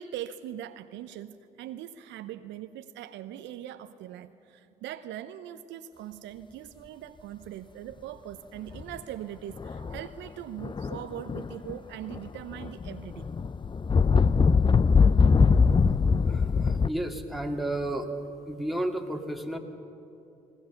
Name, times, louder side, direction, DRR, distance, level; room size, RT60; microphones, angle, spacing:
voice 1, 0.0-13.3, right 11 dB, 65° right, 10 dB, 0.7 m, -41 dB
sound 1, 8.7-9.0 9.6-10.1 10.6-11.8 12.1-16.9, left 5 dB, 25° left, 0.5 m, -22 dB
voice 2, 16.3-18.1 18.5-19.6, right 1 dB, ahead, 3 dB, 2.2 m, -32 dB
20.5 x 19.0 x 6.9 m, 2.8 s
hypercardioid pair, 50°, 20 cm